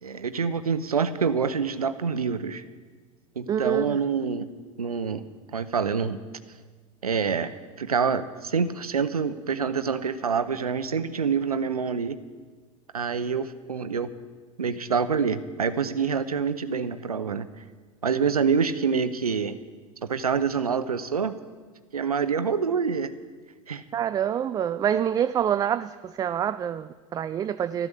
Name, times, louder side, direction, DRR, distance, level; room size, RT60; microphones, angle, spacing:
voice 1, 0.0-2.6 3.4-4.5 4.8-5.3 5.5-6.2 7.0-12.2 12.9-14.1 14.6-17.5 18.0-19.6 20.0-21.3 21.9-23.2 23.7-23.8, right 6 dB, 80° right, 12 dB, 0.8 m, -26 dB
voice 2, 3.5-4.0 23.9-27.9, right 9 dB, 20° right, 12 dB, 0.3 m, -26 dB
13.0 x 11.0 x 6.8 m, 1.5 s
figure-of-eight pair, 80°, 19 cm